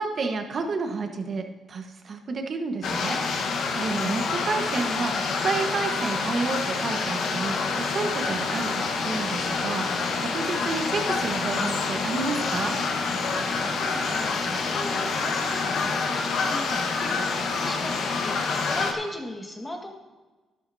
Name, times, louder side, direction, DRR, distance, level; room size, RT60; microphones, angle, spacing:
voice 1, 0.0-3.2 3.4-12.7, right 4 dB, 50° right, 5 dB, 1.4 m, -30 dB
sound 1, 2.8-18.9, left 4 dB, 70° left, 1.4 m, -27 dB
sound 2, 8.2-15.9, equal, 85° left, 2.2 m, -43 dB
voice 2, 13.8-19.9, left 1 dB, 15° left, 2 dB, 1.9 m, -37 dB
12.0 x 11.5 x 2.8 m, 1.2 s
cardioid pair, 90°, 0 cm